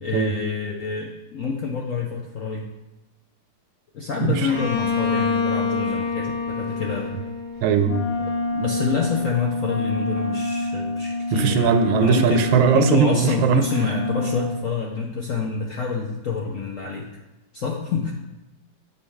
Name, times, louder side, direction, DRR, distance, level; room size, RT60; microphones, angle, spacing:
voice 1, 0.0-2.7 3.9-7.1 8.2-12.4 12.7-17.1 17.5-18.1, left 5 dB, 65° left, -1 dB, 0.8 m, -27 dB
Bowed string instrument, 4.5-8.2, left 5 dB, 20° left, 0.8 m, -26 dB
voice 2, 7.6-8.0 11.3-13.7, right 7 dB, 85° right, 8 dB, 1.5 m, -19 dB
Wind instrument woodwind instrument, 7.8-14.7, left 2 dB, 85° left, 1.4 m, -27 dB
8.2 x 5.3 x 3.5 m, 1.0 s
omnidirectional pair, 2.2 m